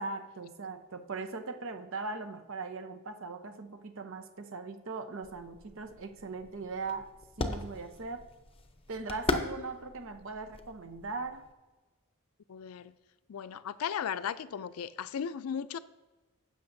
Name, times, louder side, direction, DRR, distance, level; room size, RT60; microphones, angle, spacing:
voice 1, 0.0-7.1 7.4-8.3 8.9-11.4, right 3 dB, 65° right, 0.8 m, -39 dB
sound 1, 5.2-11.5, left 2 dB, 25° left, 0.7 m, -39 dB
voice 2, 12.5-12.9 13.3-15.8, left 8 dB, 80° left, 0.4 m, -36 dB
16.0 x 6.4 x 2.7 m
head